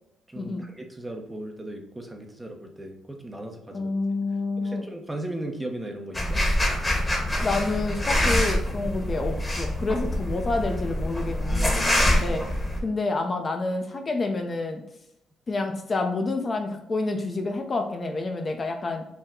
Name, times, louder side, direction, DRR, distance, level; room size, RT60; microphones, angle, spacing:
voice 1, 0.3-3.9 4.6-6.4 11.4-12.6, right 1 dB, 10° right, 3 dB, 0.8 m, -37 dB
voice 2, 3.7-4.8 7.4-12.4 12.8-14.8 15.5-19.0, left 3 dB, 35° left, 4 dB, 0.6 m, -28 dB
sound 1, 6.1-12.8, left 1 dB, 15° left, 1.1 m, -25 dB
5.7 x 2.1 x 3.6 m, 0.80 s
cardioid pair, 90°, 0 cm